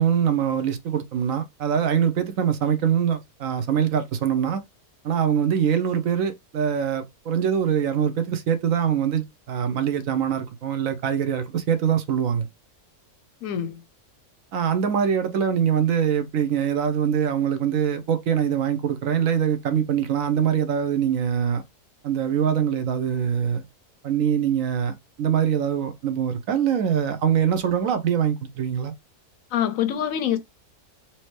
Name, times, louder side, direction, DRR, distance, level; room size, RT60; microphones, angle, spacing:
voice 1, 0.0-4.6 5.0-12.5 14.5-21.6 22.0-23.7 24.0-28.9, right 8 dB, 65° right, 1.0 m, -23 dB
voice 2, 13.4-13.8 29.5-30.4, left 10 dB, 70° left, 0.9 m, -25 dB
4.3 x 2.8 x 3.1 m
omnidirectional pair, 1.6 m